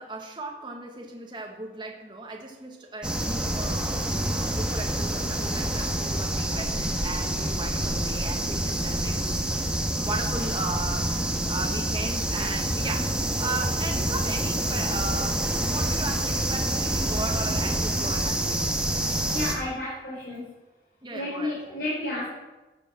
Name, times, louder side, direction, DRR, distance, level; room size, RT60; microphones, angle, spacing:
voice 1, 0.0-11.1 11.5-18.7 21.0-21.6, right 3 dB, 25° right, 1 dB, 1.5 m, -36 dB
sound 1, 3.0-19.5, right 1 dB, 5° right, 1.3 m, -27 dB
voice 2, 19.3-20.4 21.1-22.3, left 1 dB, 60° left, -7 dB, 4.3 m, -31 dB
13.0 x 6.7 x 7.5 m, 1.1 s
head